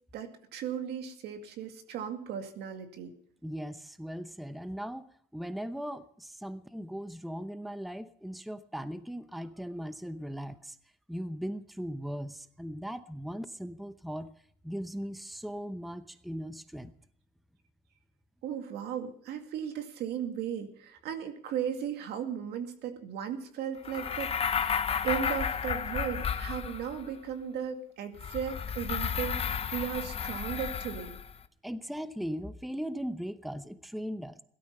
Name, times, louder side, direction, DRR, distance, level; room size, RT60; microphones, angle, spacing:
voice 1, 0.1-3.1 18.4-31.2, right 8 dB, 75° right, 6 dB, 2.2 m, -36 dB
voice 2, 3.4-5.1 5.3-10.8 11.1-14.3 14.6-16.9 31.6-34.4, equal, ahead, 12 dB, 0.8 m, -38 dB
sound 1, 23.8-27.1 28.2-31.3, left 7 dB, 35° left, 1.0 m, -32 dB
17.0 x 13.0 x 5.5 m, 0.62 s
cardioid pair, 110°, 17 cm